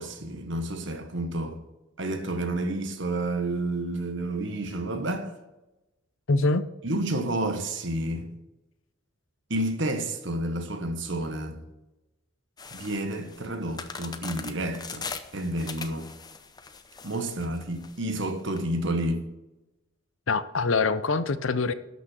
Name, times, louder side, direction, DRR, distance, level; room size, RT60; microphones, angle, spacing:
voice 1, 0.0-1.6 2.0-5.3 6.8-8.4 9.5-11.6 12.7-15.0 15.3-16.1 17.0-19.2, right 1 dB, 55° right, 1.4 m, -30 dB
voice 2, 6.3-6.6 20.3-21.7, left 3 dB, 65° left, 0.6 m, -24 dB
sound 1, 12.6-18.6, left 5 dB, 20° left, 0.6 m, -41 dB
12.0 x 6.1 x 6.4 m
head